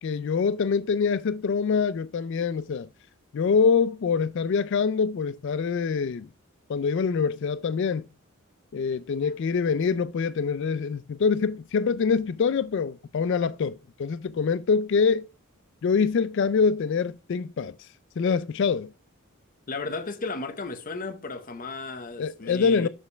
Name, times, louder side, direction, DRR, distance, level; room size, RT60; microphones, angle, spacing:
voice 1, 0.0-2.9 3.3-6.3 6.7-8.0 8.7-15.3 15.8-17.7 18.2-18.9 22.2-22.9, left 5 dB, 55° left, 0.3 m, -25 dB
voice 2, 19.7-22.9, left 3 dB, 40° left, 0.9 m, -34 dB
7.3 x 6.5 x 3.3 m
head